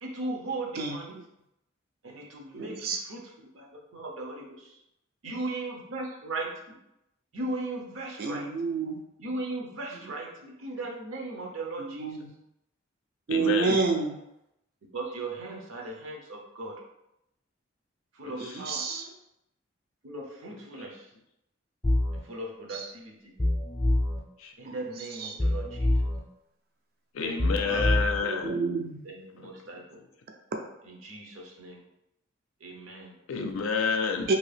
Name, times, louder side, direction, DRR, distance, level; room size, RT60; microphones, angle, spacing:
voice 1, 0.0-1.1 2.0-4.8 5.2-6.8 7.3-8.5 9.2-12.2 14.9-16.7 18.1-18.8 20.0-21.1 22.1-23.4 24.6-26.0 27.2-27.4 27.7-28.0 29.0-30.0 30.8-31.8 32.6-33.1, right 2 dB, 75° right, -1 dB, 0.7 m, -38 dB
voice 2, 0.8-1.2 2.5-3.0 8.2-9.0 11.8-12.3 13.3-14.2 18.4-19.0 22.7-22.8 24.7-24.8 25.2-25.3 27.7-29.0 34.3-34.4, right 4 dB, 50° right, 4 dB, 0.4 m, -29 dB
voice 3, 13.3-13.8 18.2-18.3 24.4-24.5 27.1-28.6 29.4-29.5 33.3-34.3, left 5 dB, 80° left, 5 dB, 0.4 m, -29 dB
sound 1, 21.8-22.2 23.4-24.2 25.4-26.2 27.4-28.2, left 1 dB, 15° left, 0.5 m, -25 dB
2.8 x 2.7 x 3.3 m, 0.85 s
head